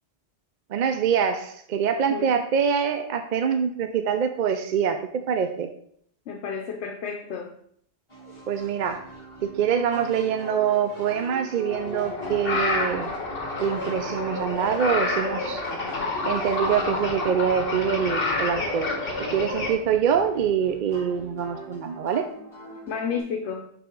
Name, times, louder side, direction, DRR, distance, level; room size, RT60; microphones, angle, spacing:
voice 1, 0.7-5.7 8.5-9.0 9.4-13.1 13.6-15.6 16.2-18.9 19.3-22.3, right 7 dB, 55° right, 7 dB, 0.5 m, -25 dB
voice 2, 6.3-7.5 22.9-23.7, left 6 dB, 75° left, 2 dB, 1.0 m, -31 dB
sound 1, 8.1-23.2, right 1 dB, 25° left, 2.1 m, -43 dB
sound 2, 11.7-19.7, left 2 dB, 55° left, 1.5 m, -28 dB
5.8 x 5.6 x 3.8 m, 0.66 s
omnidirectional pair, 1.2 m